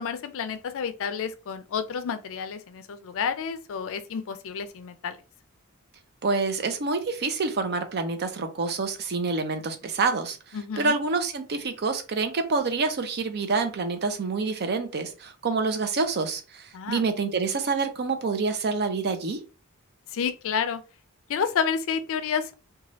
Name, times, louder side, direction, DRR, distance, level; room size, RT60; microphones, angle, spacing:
voice 1, 0.0-5.2 10.5-11.0 16.7-17.0 20.1-20.8 21.3-22.5, left 6 dB, 65° left, 0.4 m, -30 dB
voice 2, 6.2-19.4, right 4 dB, 45° right, 0.5 m, -27 dB
2.7 x 2.3 x 3.0 m
head